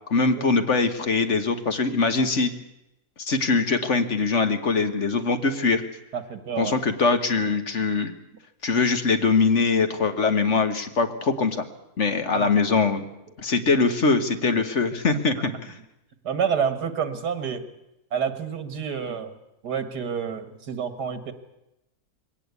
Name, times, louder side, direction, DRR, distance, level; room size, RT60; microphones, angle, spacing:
voice 1, 0.1-2.5 3.2-5.8 6.6-8.1 8.6-11.6 12.0-13.0 13.4-15.7, left 4 dB, 50° left, 8 dB, 1.6 m, -22 dB
voice 2, 6.1-6.8 12.3-12.5 15.1-15.6 16.2-17.6 18.1-19.4 19.6-21.3, right 7 dB, 85° right, 10 dB, 2.2 m, -29 dB
21.5 x 17.5 x 8.3 m, 0.90 s
omnidirectional pair, 1.7 m